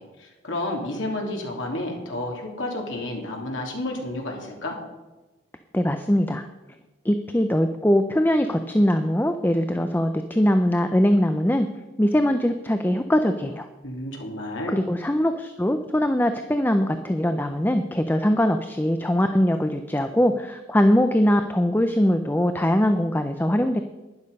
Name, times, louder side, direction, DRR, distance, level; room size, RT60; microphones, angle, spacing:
voice 1, 0.0-4.8 13.8-14.8, left 1 dB, 85° left, 0 dB, 3.0 m, -31 dB
voice 2, 5.7-6.4 7.0-11.7 12.0-13.7 14.7-23.8, equal, 10° left, 8 dB, 0.5 m, -21 dB
12.0 x 10.5 x 5.4 m, 1.1 s
head